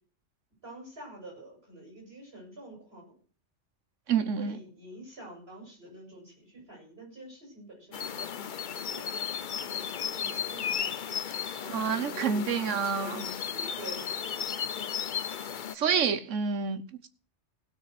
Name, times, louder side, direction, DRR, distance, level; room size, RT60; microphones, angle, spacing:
voice 1, 0.6-3.2 4.4-9.1 9.5-11.1 11.6-14.2, right 1 dB, 55° right, 6.5 m, -47 dB
voice 2, 4.1-4.6 11.7-13.2 15.7-17.1, right 6 dB, 80° right, 1.4 m, -28 dB
sound 1, 7.9-15.7, left 8 dB, 50° left, 0.7 m, -35 dB
16.0 x 6.5 x 6.0 m
omnidirectional pair, 1.3 m